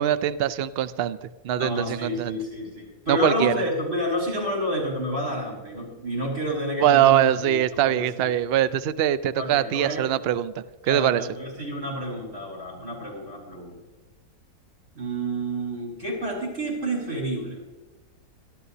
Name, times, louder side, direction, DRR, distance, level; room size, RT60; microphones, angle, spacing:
voice 1, 0.0-2.4 3.1-3.6 6.8-11.3, right 11 dB, 85° right, 14 dB, 0.5 m, -23 dB
voice 2, 1.6-8.2 9.4-10.0 10.8-13.7 15.0-17.6, equal, 50° right, -3 dB, 5.8 m, -29 dB
25.0 x 12.0 x 2.8 m, 1.2 s
omnidirectional pair, 1.7 m